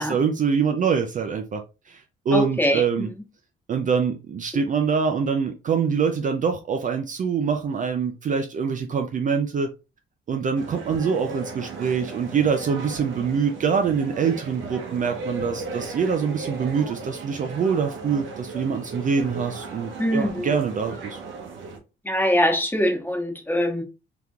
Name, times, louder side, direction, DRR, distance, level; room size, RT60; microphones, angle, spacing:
voice 1, 0.0-3.1 3.7-9.7 10.3-21.2, right 6 dB, 40° right, 0.4 m, -24 dB
voice 2, 2.3-3.1 20.0-20.5 22.0-23.8, equal, 10° left, 1.1 m, -23 dB
sound 1, 10.6-21.8, right 3 dB, 80° right, 0.8 m, -36 dB
3.5 x 2.9 x 2.3 m
cardioid pair, 90°, 20 cm